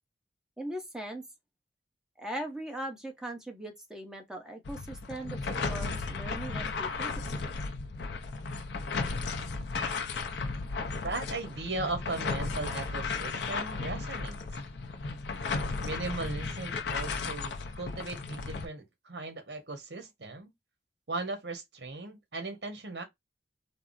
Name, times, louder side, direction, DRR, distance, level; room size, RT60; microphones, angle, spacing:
voice 1, 0.6-1.2 2.2-7.5, right 1 dB, 5° right, 0.8 m, -40 dB
sound 1, 4.7-18.7, left 4 dB, 75° left, 0.5 m, -35 dB
voice 2, 10.9-14.4 15.8-20.5 21.1-23.0, right 3 dB, 70° right, 1.0 m, -37 dB
3.5 x 2.0 x 2.4 m
head